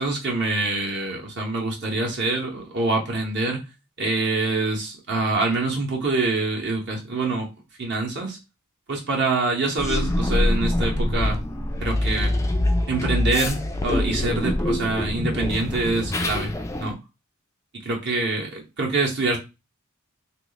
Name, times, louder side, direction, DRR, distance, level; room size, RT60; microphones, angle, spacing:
voice 1, 0.0-3.6 4.0-7.5 7.8-8.4 8.9-11.4 11.8-12.3 12.9-17.0 17.9-19.4, right 2 dB, 55° right, 0 dB, 0.8 m, -25 dB
sound 1, 9.8-16.9, left 1 dB, 15° left, 0.3 m, -24 dB
3.0 x 2.4 x 3.9 m, 0.27 s
head